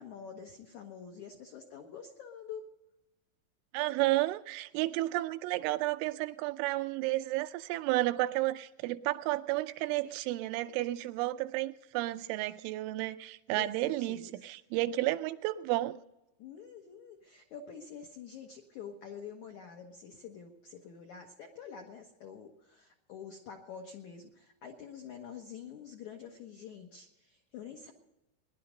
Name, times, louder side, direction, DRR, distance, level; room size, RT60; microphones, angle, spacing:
voice 1, 0.0-2.7 10.0-10.2 12.3-12.6 13.5-14.4 16.4-27.9, left 7 dB, 75° left, 1.7 m, -47 dB
voice 2, 3.7-16.0, right 17 dB, 85° right, 3.1 m, -32 dB
19.5 x 11.0 x 5.2 m
omnidirectional pair, 5.4 m